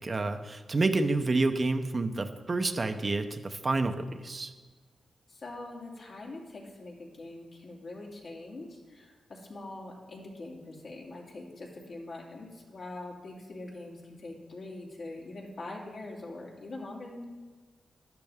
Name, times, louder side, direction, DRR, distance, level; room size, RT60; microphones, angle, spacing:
voice 1, 0.0-4.5, right 3 dB, 35° right, 7 dB, 0.8 m, -29 dB
voice 2, 5.3-17.3, left 2 dB, 60° left, -3 dB, 2.6 m, -43 dB
12.0 x 11.0 x 3.6 m, 1.4 s
cardioid pair, 95°, 0 cm